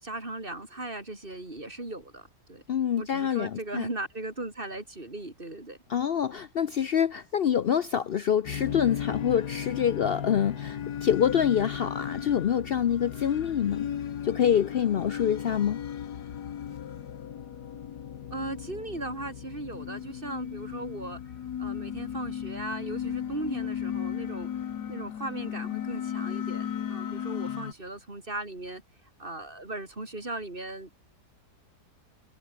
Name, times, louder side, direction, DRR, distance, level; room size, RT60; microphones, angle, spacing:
voice 1, 0.0-2.6 3.0-5.8 18.3-21.2 21.6-24.5 24.9-28.8 29.2-30.9, right 2 dB, 30° right, 4.3 m, -37 dB
voice 2, 2.7-3.9 5.9-13.9 14.2-15.8, left 8 dB, 85° left, 0.5 m, -26 dB
sound 1, 8.5-27.7, left 9 dB, 65° left, 1.8 m, -35 dB
omnidirectional pair, 1.9 m